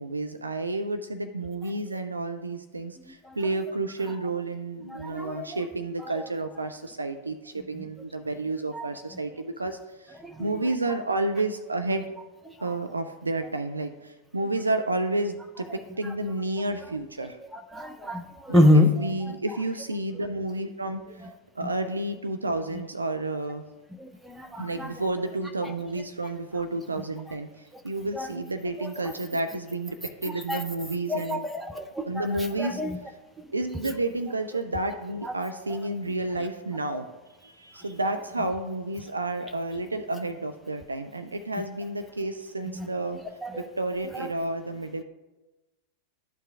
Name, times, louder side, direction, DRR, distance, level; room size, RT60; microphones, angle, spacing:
voice 1, 0.0-12.1 12.6-17.4 18.5-21.3 21.6-23.6 24.6-31.5 32.1-32.8 33.5-37.1 37.4-43.2 43.6-45.0, right 2 dB, 80° right, 8 dB, 0.3 m, -31 dB
voice 2, 4.9-5.6 8.7-8.9 10.2-10.5 17.5-18.9 24.0-24.9 28.1-28.3 28.8-28.9 30.5-30.6 31.1-32.3 32.6-33.0 35.2-35.3 42.8-42.9 43.4-43.7, left 1 dB, ahead, 4 dB, 0.5 m, -25 dB
12.0 x 4.5 x 2.4 m, 1.1 s
figure-of-eight pair, 90°, 0 cm